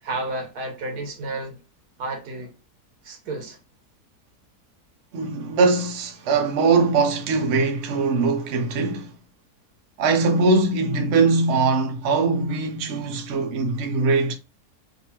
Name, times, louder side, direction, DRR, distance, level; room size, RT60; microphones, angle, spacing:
voice 1, 0.0-1.6 2.0-2.5 3.0-3.6, right 2 dB, 80° right, 1.6 m, -31 dB
voice 2, 5.1-9.1 10.0-14.3, right 3 dB, 55° right, 0.9 m, -21 dB
3.8 x 2.6 x 2.8 m
omnidirectional pair, 1.6 m